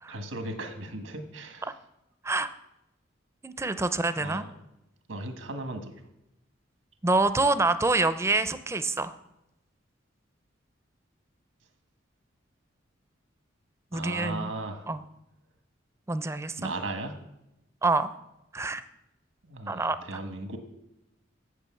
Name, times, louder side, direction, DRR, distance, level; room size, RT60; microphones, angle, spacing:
voice 1, 0.1-1.7 4.2-4.5 5.1-5.9 13.9-14.9 16.6-17.2 19.4-20.6, right 2 dB, 90° right, 6 dB, 1.5 m, -36 dB
voice 2, 3.4-4.4 7.0-9.1 13.9-14.5 14.9-15.0 16.1-16.7 17.8-18.1 18.5-18.8 19.7-20.2, right 3 dB, 15° right, 12 dB, 0.4 m, -26 dB
8.4 x 7.9 x 7.1 m, 0.89 s
head